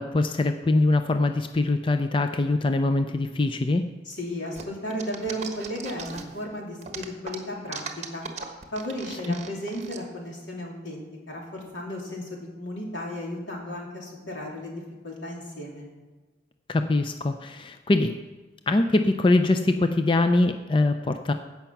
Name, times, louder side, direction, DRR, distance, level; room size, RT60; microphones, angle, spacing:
voice 1, 0.0-3.8 16.7-18.1 18.7-21.3, left 2 dB, 30° left, 8 dB, 0.4 m, -23 dB
voice 2, 4.1-8.2 8.7-15.9, equal, 85° left, -2 dB, 3.0 m, -34 dB
sound 1, 4.6-6.4 6.8-10.0, right 5 dB, 40° right, 1.2 m, -38 dB
16.0 x 5.8 x 5.9 m, 1.3 s
head